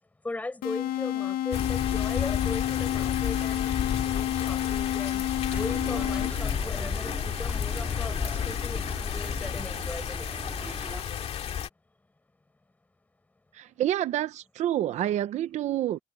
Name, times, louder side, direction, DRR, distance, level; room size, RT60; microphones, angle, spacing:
voice 1, 0.2-5.2 5.5-10.6, left 2 dB, 10° left, 4.5 m, -39 dB
sound 1, 0.6-6.6, left 12 dB, 90° left, 1.3 m, -30 dB
sound 2, 1.5-11.7, left 8 dB, 45° left, 2.2 m, -31 dB
sound 3, 5.5-11.0, right 1 dB, 5° right, 1.7 m, -38 dB
voice 2, 13.5-16.0, right 12 dB, 55° right, 0.7 m, -28 dB
cardioid pair, 170°, 14 cm